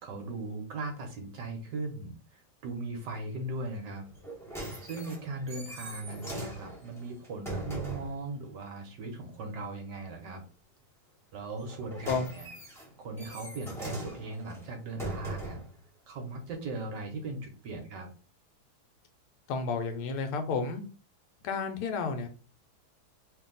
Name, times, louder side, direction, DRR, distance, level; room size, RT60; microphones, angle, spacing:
voice 1, 0.0-4.0 4.8-10.4 11.3-12.5 12.8-15.6 16.1-18.1, right 2 dB, 65° right, 3 dB, 1.2 m, -38 dB
sound 1, 4.1-8.2 11.6-15.8 16.5-16.6, right 1 dB, 5° left, 0.4 m, -40 dB
voice 2, 19.5-20.8 21.4-22.3, left 4 dB, 85° left, 7 dB, 1.6 m, -31 dB
3.3 x 2.7 x 3.7 m, 0.36 s
omnidirectional pair, 2.4 m